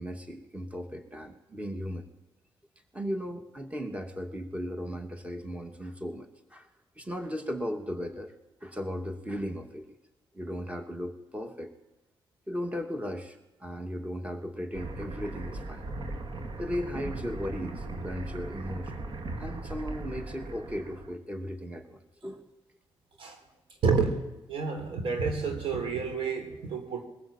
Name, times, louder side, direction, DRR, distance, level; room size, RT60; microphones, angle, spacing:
voice 1, 0.0-2.1 2.9-6.7 7.0-8.3 8.6-9.9 10.3-11.7 12.5-15.8 16.6-19.1 19.4-22.5, equal, 15° right, 5 dB, 2.3 m, -36 dB
sound 1, 14.7-21.2, right 2 dB, 55° right, 2.1 m, -38 dB
voice 2, 23.8-24.2 24.5-27.0, right 5 dB, 75° right, 5 dB, 3.8 m, -29 dB
22.0 x 15.5 x 8.9 m, 1.0 s
cardioid pair, 65°, 9 cm